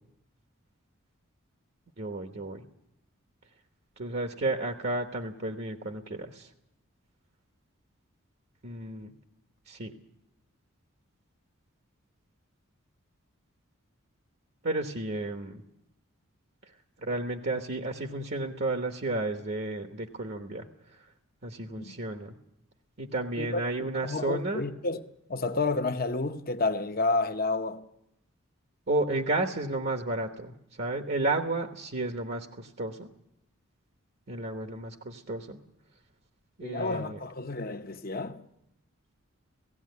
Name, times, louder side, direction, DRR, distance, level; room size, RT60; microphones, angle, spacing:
voice 1, 2.0-2.6 4.0-6.5 8.6-9.1 9.7-10.0 14.6-15.6 16.6-16.7 17.0-21.0 21.4-22.3 23.0-24.6 28.9-33.1 34.3-35.6 36.6-37.2, right 2 dB, 50° right, 1.1 m, -32 dB
voice 2, 23.4-25.0 25.3-27.9 36.6-38.4, left 3 dB, 45° left, 0.9 m, -30 dB
17.0 x 16.0 x 9.4 m
head